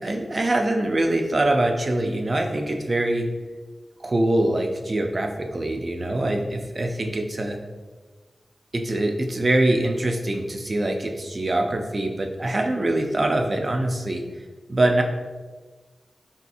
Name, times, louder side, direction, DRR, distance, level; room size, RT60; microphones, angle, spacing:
voice 1, 0.0-3.3 4.0-7.6 8.7-14.2 14.7-15.0, right 1 dB, 45° right, 3 dB, 0.4 m, -23 dB
3.4 x 2.8 x 2.3 m, 1.3 s
wide cardioid pair, 70°, 0 cm